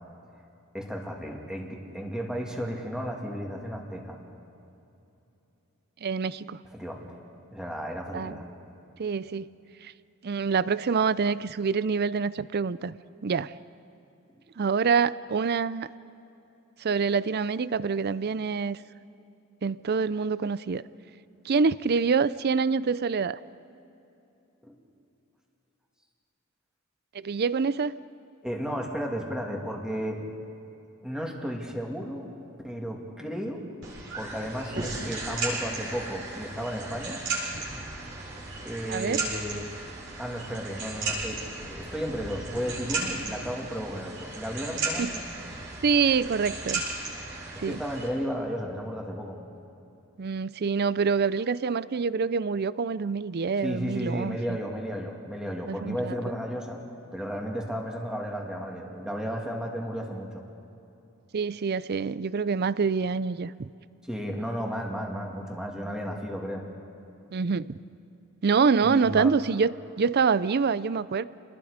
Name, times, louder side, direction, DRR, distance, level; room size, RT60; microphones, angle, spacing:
voice 1, 0.7-4.2 6.7-7.1 7.5-8.4 24.6-24.7 28.4-30.2 31.0-32.3 32.6-33.6 34.1-37.2 38.6-39.6 40.2-45.1 47.5-49.4 53.6-56.8 57.1-60.4 64.1-66.6 68.8-69.3, equal, 5° right, 0 dB, 2.5 m, -33 dB
voice 2, 6.0-6.6 8.1-8.4 9.0-9.5 9.8-9.9 10.2-12.9 13.2-13.5 14.6-15.9 16.8-18.8 19.6-20.8 21.4-23.4 27.1-27.9 38.9-39.2 45.0-45.1 45.8-46.8 47.6-47.8 50.2-54.6 55.7-56.2 61.3-63.5 67.3-67.7 68.4-71.3, right 5 dB, 50° right, 17 dB, 0.5 m, -26 dB
sound 1, 33.8-48.1, right 3 dB, 65° right, 7.3 m, -35 dB
29.5 x 21.0 x 5.1 m, 2.8 s
head